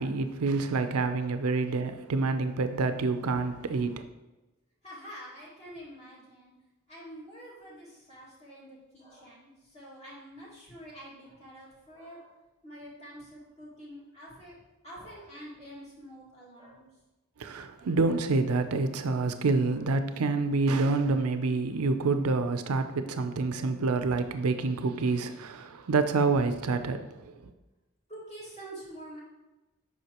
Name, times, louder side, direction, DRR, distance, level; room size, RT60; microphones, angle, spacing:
voice 1, 0.0-4.0 17.4-27.3, right 3 dB, 80° right, 9 dB, 0.5 m, -27 dB
voice 2, 4.8-6.5 6.9-12.3 12.6-14.5 14.8-16.9 19.7-19.8 28.1-29.2, equal, 30° left, -7 dB, 1.9 m, -47 dB
7.9 x 5.6 x 2.9 m, 1.1 s
head